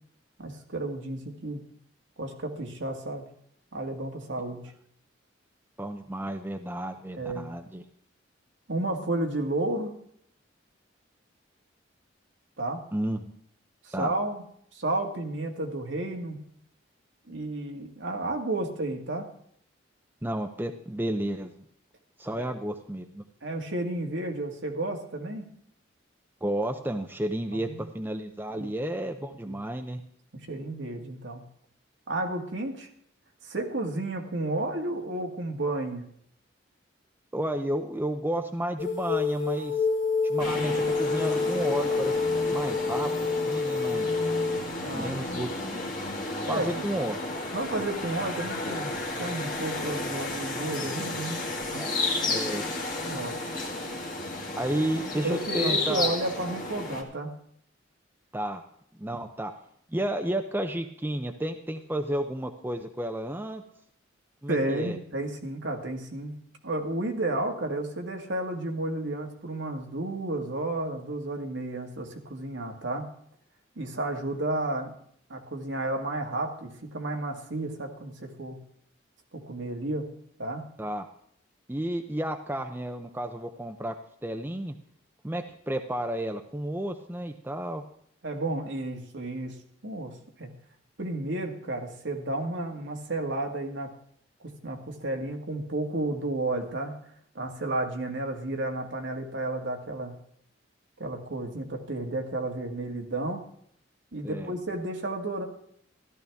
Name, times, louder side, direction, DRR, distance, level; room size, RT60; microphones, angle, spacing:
voice 1, 0.4-1.6 2.2-3.2 3.7-4.6 7.2-7.5 8.7-9.9 12.6-12.8 13.9-14.4 14.7-16.4 17.3-19.3 22.4-22.5 23.4-25.5 27.5-27.8 28.6-28.7 29.4-29.6 30.3-31.4 32.1-32.9 33.4-36.0 44.8-45.1 46.5-46.8 47.5-51.4 51.7-52.2 53.1-53.4 55.2-57.3 64.5-66.3 66.6-73.1 73.8-74.9 75.3-78.6 79.3-80.1 80.4-80.6 88.2-90.1 90.4-90.5 91.0-93.9 94.4-96.9 97.4-100.1 101.0-103.4 104.1-105.4, right 2 dB, 70° right, 2 dB, 1.8 m, -32 dB
voice 2, 5.8-7.8 12.9-13.3 13.9-14.1 20.2-21.6 22.2-23.2 26.4-30.0 37.3-39.8 40.2-42.2 42.5-44.1 44.9-45.9 46.5-47.2 51.7-52.6 54.6-56.1 58.3-58.6 59.0-59.5 59.9-63.6 64.4-65.0 80.8-81.0 81.7-83.9 84.2-84.8 85.2-87.8 104.2-104.5, right 1 dB, 10° right, 6 dB, 0.5 m, -32 dB
sound 1, 38.8-44.6, left 4 dB, 70° left, 1.0 m, -27 dB
sound 2, 40.4-57.0, left 2 dB, 45° left, 1.9 m, -32 dB
14.0 x 12.0 x 3.5 m, 0.66 s
head